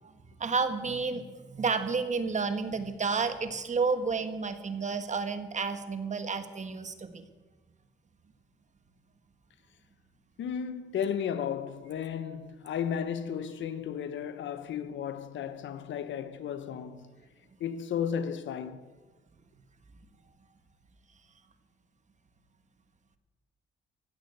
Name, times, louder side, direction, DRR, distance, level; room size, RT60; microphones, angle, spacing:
voice 1, 0.4-7.2, right 4 dB, 35° right, 1.6 m, -31 dB
voice 2, 10.4-17.1 17.6-18.9, left 8 dB, 70° left, 1.2 m, -34 dB
15.5 x 8.8 x 8.1 m
cardioid pair, 90°, 20 cm